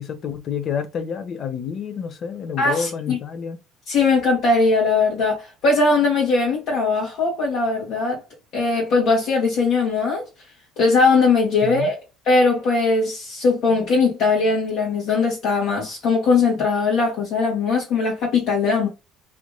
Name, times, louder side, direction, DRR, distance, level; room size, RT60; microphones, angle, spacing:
voice 1, 0.0-3.6 11.6-11.9, left 7 dB, 45° left, 0.8 m, -29 dB
voice 2, 2.6-3.2 3.9-8.2 8.5-10.3 10.8-12.0 12.3-18.9, left 4 dB, 65° left, 1.5 m, -20 dB
3.3 x 2.6 x 3.1 m
cardioid pair, 115°, 0 cm